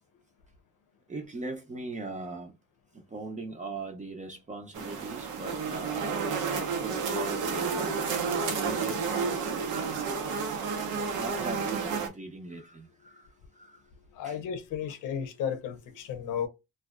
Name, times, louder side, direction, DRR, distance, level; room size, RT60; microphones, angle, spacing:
voice 1, 1.1-2.5 2.9-7.9 8.5-9.6 11.1-13.3 13.6-13.8 14.2-14.4, right 3 dB, 25° right, 0.6 m, -40 dB
sound 1, 4.7-12.1, right 5 dB, 80° right, 0.7 m, -31 dB
voice 2, 14.1-16.5, left 8 dB, 90° left, 0.7 m, -33 dB
2.5 x 2.3 x 2.2 m
cardioid pair, 90°, 30 cm